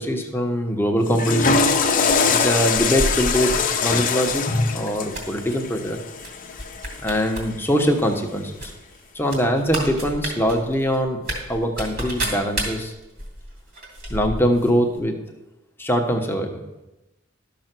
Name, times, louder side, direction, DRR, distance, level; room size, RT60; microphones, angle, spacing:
voice 1, 0.0-1.6 2.3-4.5 4.7-6.0 7.0-8.7 9.1-11.2 11.5-12.9 14.1-15.1 15.8-16.6, equal, 10° left, 3 dB, 1.1 m, -22 dB
Water / Toilet flush, 1.0-7.3, left 5 dB, 40° left, 0.8 m, -23 dB
sound 1, 2.0-3.6 4.2-4.4 4.8-5.6 6.2-6.3 6.6-7.4 7.7-7.8 8.6-14.7 15.0-15.1, right 1 dB, 50° right, 2.8 m, -31 dB
12.0 x 6.7 x 6.1 m, 0.97 s
head